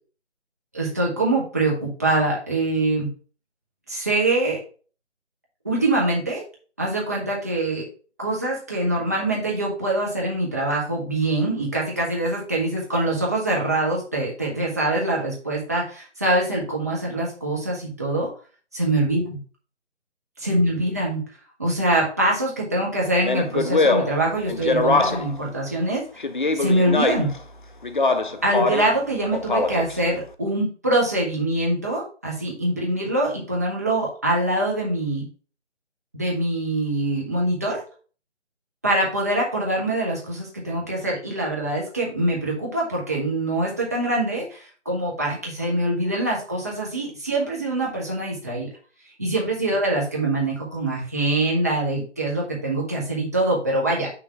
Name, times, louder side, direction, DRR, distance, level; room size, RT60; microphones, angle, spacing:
voice 1, 0.7-3.1 3.9-4.6 5.6-6.4 6.8-7.8 8.2-18.3 18.7-19.4 20.4-21.2 21.6-26.0 26.5-27.3 28.4-35.3 36.1-37.8 38.8-48.7 49.2-54.1, right 1 dB, 15° right, -4 dB, 0.8 m, -24 dB
Speech, 23.2-25.4 26.2-27.4 27.8-28.9 29.3-30.0, left 3 dB, 45° left, 0.5 m, -22 dB
5.9 x 3.2 x 5.6 m, 0.39 s
figure-of-eight pair, 155°, 36 cm